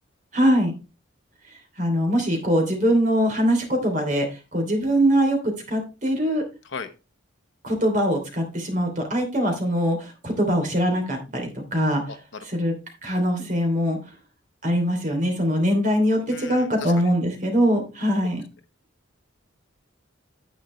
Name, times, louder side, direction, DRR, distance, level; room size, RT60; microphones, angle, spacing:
voice 1, 0.3-0.7 1.8-4.2 4.5-6.4 7.6-12.0 12.4-12.7 13.0-14.0 14.6-18.4, equal, 40° right, 3 dB, 2.9 m, -22 dB
voice 2, 12.1-12.6 16.3-17.0 18.2-18.3, left 4 dB, 60° left, 9 dB, 1.0 m, -37 dB
10.0 x 8.3 x 3.2 m, 0.29 s
head